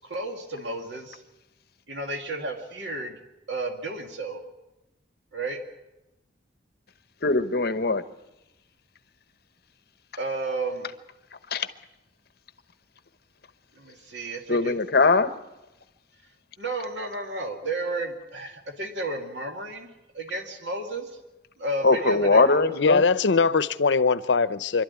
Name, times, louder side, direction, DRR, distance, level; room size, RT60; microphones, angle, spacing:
voice 1, 0.0-1.2 1.9-3.2 3.5-4.4 5.3-5.6 10.2-10.9 13.8-14.7 16.6-19.9 20.1-21.1 21.6-22.5, right 2 dB, 80° right, 2.1 m, -32 dB
voice 2, 7.2-8.0 11.5-11.7 14.5-15.3 21.8-23.0, left 3 dB, 60° left, 1.0 m, -21 dB
voice 3, 22.7-24.8, left 4 dB, 90° left, 0.7 m, -21 dB
25.5 x 12.5 x 9.6 m
head